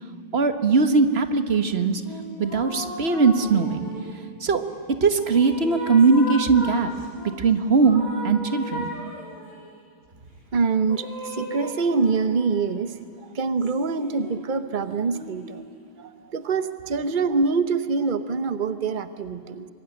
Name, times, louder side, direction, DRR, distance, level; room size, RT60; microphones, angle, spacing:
voice 1, 0.3-2.0 2.4-3.9 4.4-4.6 5.0-6.9 7.2-8.9, right 4 dB, 35° right, 9 dB, 1.3 m, -20 dB
sound 1, 2.0-4.3 4.9-7.4 7.8-9.7 10.9-12.8 13.6-15.9, left 1 dB, 35° left, 7.0 m, -37 dB
voice 2, 10.5-15.6 16.0-19.7, right 4 dB, 85° right, 11 dB, 0.4 m, -25 dB
25.0 x 22.0 x 10.0 m, 2.4 s
omnidirectional pair, 2.4 m